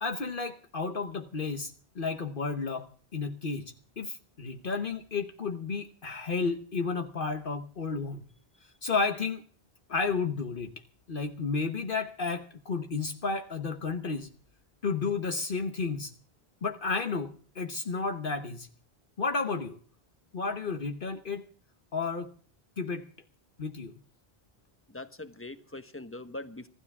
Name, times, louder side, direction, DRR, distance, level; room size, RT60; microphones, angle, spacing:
voice 1, 0.0-8.3 8.8-9.4 9.9-10.7 11.1-14.3 14.8-16.1 16.6-18.7 19.2-19.8 20.3-21.4 21.9-22.3 22.8-23.1 23.6-24.0, left 4 dB, 60° left, 7 dB, 1.2 m, -32 dB
voice 2, 24.9-26.7, left 2 dB, 15° left, 9 dB, 1.3 m, -42 dB
25.5 x 12.5 x 3.6 m, 0.43 s
omnidirectional pair, 1.0 m